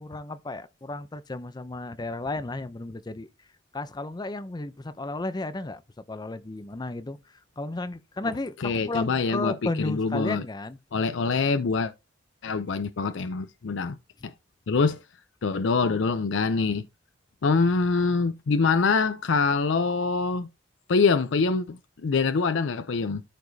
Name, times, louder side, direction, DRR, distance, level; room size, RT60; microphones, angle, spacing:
voice 1, 0.0-3.3 3.7-5.8 6.1-10.8, left 2 dB, 20° left, 0.5 m, -33 dB
voice 2, 8.6-10.4 10.9-11.9 12.4-14.0 14.2-14.3 14.7-15.0 15.4-16.8 17.4-20.5 20.9-23.2, left 4 dB, 75° left, 0.5 m, -25 dB
13.0 x 4.9 x 2.7 m
head